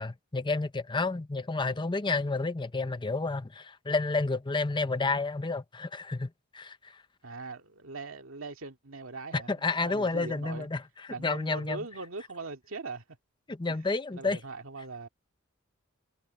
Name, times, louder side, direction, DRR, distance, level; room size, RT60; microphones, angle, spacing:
voice 1, 0.0-7.0 9.3-10.8 11.2-11.8 13.5-14.4, left 3 dB, 25° left, 0.7 m, -30 dB
voice 2, 7.2-10.7 11.1-13.0 13.7-13.8 14.1-15.1, right 3 dB, 75° right, 2.2 m, -41 dB
head